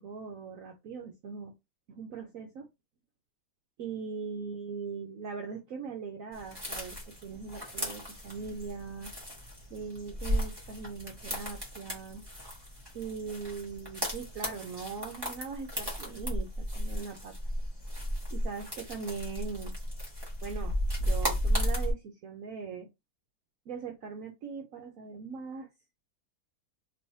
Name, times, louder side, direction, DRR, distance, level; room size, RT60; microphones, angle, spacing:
voice 1, 0.0-1.5 1.9-2.7 3.8-9.1 9.7-12.2 12.9-17.3 18.3-19.7 20.4-22.9 23.7-25.7, right 5 dB, 65° right, 1.0 m, -40 dB
sound 1, 6.3-21.9, equal, 15° right, 1.1 m, -35 dB
3.4 x 3.0 x 2.7 m
omnidirectional pair, 1.7 m